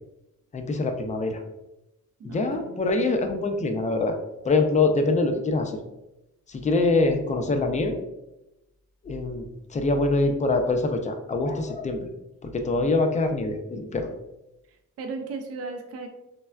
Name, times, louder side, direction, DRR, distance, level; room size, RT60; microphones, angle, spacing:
voice 1, 0.5-1.4 2.2-4.2 4.4-5.8 6.5-8.0 9.0-9.5 9.7-12.0 12.4-14.1, left 3 dB, 25° left, 5 dB, 0.3 m, -24 dB
voice 2, 2.2-3.0 14.7-16.1, right 4 dB, 50° right, 4 dB, 0.4 m, -37 dB
3.3 x 2.2 x 2.2 m, 0.95 s
cardioid pair, 105°, 32 cm